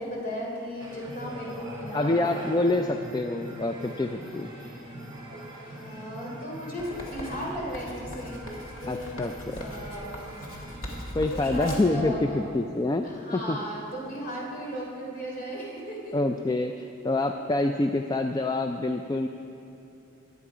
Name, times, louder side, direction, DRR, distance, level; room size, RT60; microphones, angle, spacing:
voice 1, 0.0-2.7 5.7-8.4 8.8-10.2 11.3-12.5 13.0-16.1 16.9-17.4, equal, 45° left, -3 dB, 3.6 m, -36 dB
sound 1, 0.8-11.1, right 1 dB, 25° right, 2.6 m, -42 dB
voice 2, 1.9-4.5 8.9-9.6 11.1-13.1 13.3-13.6 16.1-19.3, left 2 dB, 20° left, 6 dB, 0.3 m, -26 dB
Writing, 6.8-12.0, left 1 dB, 70° left, 2.3 m, -40 dB
21.0 x 8.3 x 4.9 m, 2.9 s
head